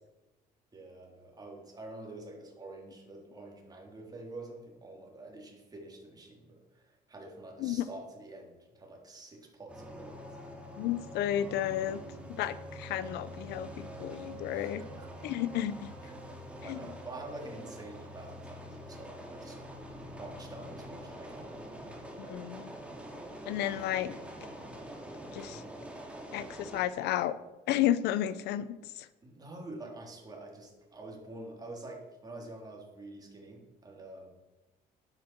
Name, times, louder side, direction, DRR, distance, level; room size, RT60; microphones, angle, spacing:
voice 1, 0.7-10.7 14.5-15.1 16.0-16.3 16.6-19.6 19.9-21.6 29.2-34.3, right 2 dB, 20° right, -1 dB, 3.5 m, -47 dB
sound 1, 9.7-26.8, equal, 5° right, 2.8 m, -45 dB
voice 2, 10.8-12.0 12.4-14.8 15.2-15.9 16.6-16.8 22.2-22.7 23.5-24.1 25.3-25.6 26.3-27.4 27.7-29.1, left 12 dB, 85° left, 15 dB, 0.8 m, -32 dB
11.0 x 9.3 x 6.1 m, 1.0 s
cardioid pair, 110°, 17 cm